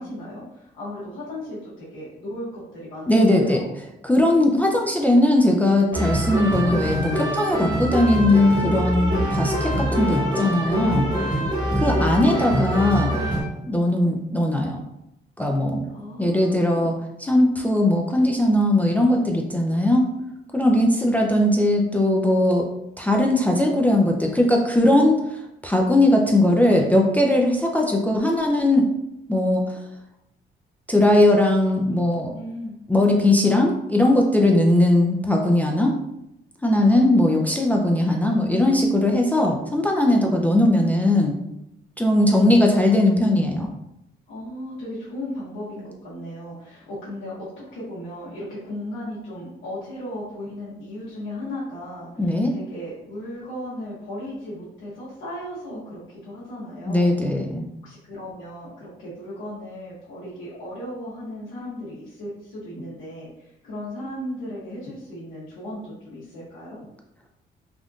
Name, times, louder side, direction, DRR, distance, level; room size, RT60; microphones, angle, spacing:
voice 1, 0.0-3.7 10.9-11.4 11.8-12.0 12.5-12.9 15.9-17.0 20.9-21.3 32.3-33.2 40.6-41.1 42.3-42.6 44.3-57.1 57.8-66.8, left 1 dB, 90° left, -9 dB, 1.0 m, -36 dB
voice 2, 3.1-3.6 4.0-11.1 11.8-13.2 13.6-14.8 15.4-15.9 16.2-20.1 20.5-22.7 23.0-25.2 25.6-28.8 29.3-29.6 30.9-32.3 32.9-35.9 36.6-41.4 42.0-43.7 52.2-52.5 56.9-57.7, left 1 dB, 10° left, 0 dB, 0.4 m, -19 dB
sound 1, 5.9-13.4, equal, 20° right, 0.9 m, -24 dB
3.5 x 2.5 x 2.3 m, 0.84 s
cardioid pair, 90°, 20 cm